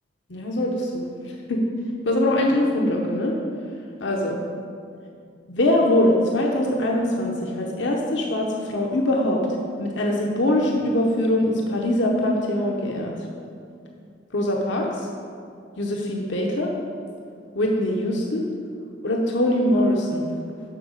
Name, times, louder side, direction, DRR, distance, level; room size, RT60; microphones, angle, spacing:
voice 1, 0.3-1.1 1.5-1.6 2.0-3.3 4.0-4.4 5.5-9.4 9.8-13.1 14.3-15.1 15.8-16.7 17.5-18.5 19.0-20.2, left 1 dB, 70° left, -1 dB, 0.9 m, -22 dB
7.7 x 5.9 x 6.5 m, 2.4 s
head